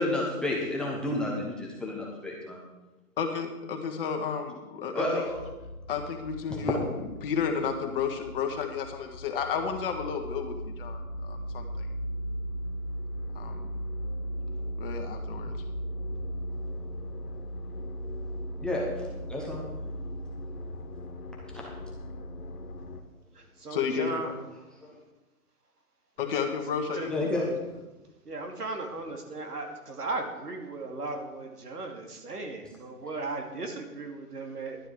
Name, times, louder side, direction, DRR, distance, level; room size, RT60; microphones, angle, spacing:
voice 1, 0.0-2.6 4.9-5.4 6.5-6.8 18.6-18.8 19.3-19.7 27.1-27.4, left 1 dB, ahead, -4 dB, 0.9 m, -30 dB
voice 2, 3.2-5.2 5.9-11.9 13.4-13.7 14.8-15.5 23.7-24.3 26.2-27.5, left 6 dB, 35° left, 3 dB, 1.7 m, -32 dB
sound 1, 5.3-23.0, equal, 85° left, 1.6 m, -37 dB
voice 3, 23.3-24.3 26.9-27.1 28.2-34.8, right 3 dB, 90° right, 3 dB, 2.6 m, -36 dB
11.5 x 9.8 x 4.7 m, 1.1 s
hypercardioid pair, 145°, 45 cm